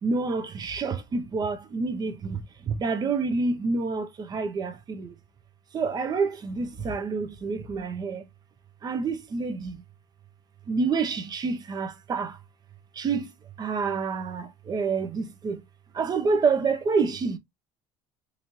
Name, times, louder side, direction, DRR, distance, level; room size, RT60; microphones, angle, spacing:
voice 1, 0.0-5.1 5.7-8.3 8.8-9.8 10.7-12.4 12.9-13.3 13.6-15.6 15.9-17.4, right 4 dB, 35° right, 0.8 m, -28 dB
3.9 x 2.8 x 3.1 m
supercardioid pair, 95°, 11 cm